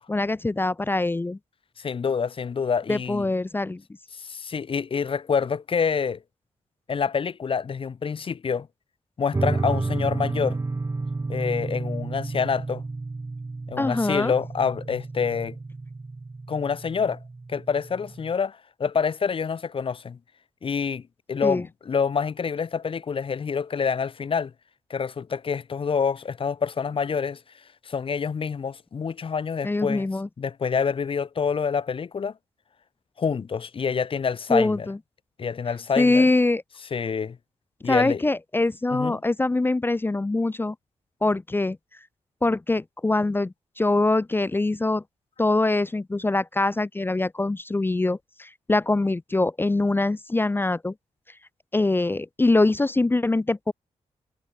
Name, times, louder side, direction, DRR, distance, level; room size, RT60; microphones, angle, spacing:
voice 1, 0.1-1.4 2.9-3.8 13.8-14.3 21.4-21.6 29.6-30.3 34.5-35.0 36.0-36.6 37.9-40.7 41.2-41.8 42.4-45.0 45.4-50.9 51.7-53.7, left 2 dB, 20° left, 0.6 m, -23 dB
voice 2, 1.8-3.2 4.2-6.2 6.9-8.7 9.2-10.6 11.3-12.8 13.7-15.6 16.5-17.2 17.5-20.2 20.6-21.0 21.3-24.5 24.9-27.4 27.8-30.1 30.4-32.3 33.2-34.9 35.4-36.3 36.9-37.4 37.8-38.2 38.9-39.2, left 6 dB, 50° left, 1.2 m, -27 dB
sound 1, 9.3-18.3, right 3 dB, 25° right, 1.3 m, -31 dB
cardioid pair, 85°, 12 cm